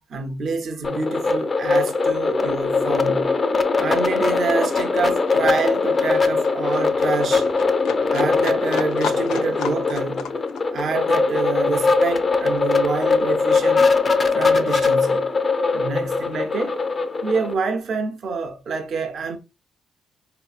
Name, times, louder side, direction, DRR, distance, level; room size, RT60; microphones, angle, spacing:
voice 1, 0.1-3.3 3.8-7.5 8.1-10.3 10.7-13.8 14.3-15.3 15.7-16.8 17.2-19.4, right 4 dB, 60° right, 0.5 m, -27 dB
sound 1, 0.8-17.5, left 4 dB, 35° left, 0.4 m, -21 dB
Livestock farm animals working animals, 2.7-13.4 13.7-14.7 15.0-15.1, left 7 dB, 85° left, 0.4 m, -36 dB
4.0 x 2.6 x 2.4 m
cardioid pair, 90°, 0 cm